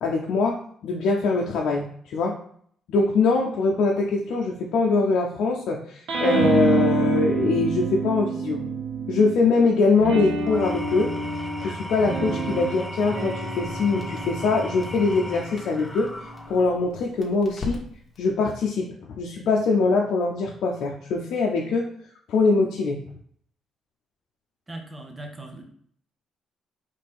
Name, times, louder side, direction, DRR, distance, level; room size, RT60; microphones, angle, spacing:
voice 1, 0.0-2.4 2.9-8.6 9.1-11.1 11.6-16.1 16.5-17.8 18.2-21.9 22.3-23.0, left 4 dB, 75° left, -1 dB, 0.5 m, -23 dB
sound 1, 6.1-9.4 10.0-16.8, right 4 dB, 80° right, 1.0 m, -28 dB
Engine / Tools, 10.4-16.8, equal, 15° left, 0.7 m, -36 dB
Crackle, 13.0-18.3, left 2 dB, 30° left, 1.1 m, -43 dB
voice 2, 24.7-25.6, right 1 dB, 20° right, 3 dB, 1.0 m, -39 dB
4.2 x 3.3 x 3.5 m, 0.62 s
cardioid pair, 90°, 0 cm